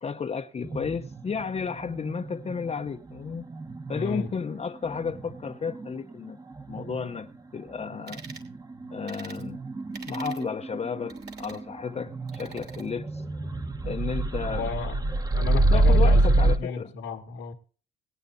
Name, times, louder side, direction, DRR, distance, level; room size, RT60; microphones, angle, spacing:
voice 1, 0.0-3.4 3.9-6.4 6.7-8.2 8.9-9.6 10.1-13.2 13.8-14.7 15.5-16.9, left 5 dB, 30° left, 0.7 m, -33 dB
sound 1, 0.6-7.4 7.7-16.6, right 2 dB, 20° right, 1.1 m, -28 dB
voice 2, 3.9-4.3 14.5-17.5, left 5 dB, 85° left, 1.5 m, -34 dB
sound 2, 8.1-8.5 9.1-9.4 9.9-10.4 11.1-11.6 12.3-12.9, right 6 dB, 55° right, 3.0 m, -44 dB
20.0 x 9.1 x 2.7 m
cardioid pair, 90°, 20 cm